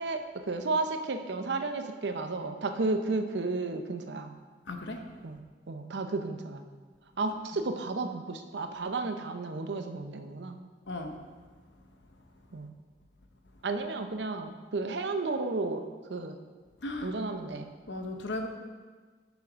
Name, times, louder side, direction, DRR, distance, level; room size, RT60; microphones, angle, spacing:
voice 1, 0.0-4.3 5.2-6.6 7.2-10.6 12.5-12.7 13.6-16.4 17.0-17.7, right 3 dB, 75° right, 7 dB, 0.7 m, -33 dB
voice 2, 4.7-5.0 10.9-11.2 16.8-17.1 17.9-18.5, left 2 dB, 90° left, 5 dB, 0.9 m, -36 dB
7.0 x 6.4 x 5.1 m, 1.4 s
head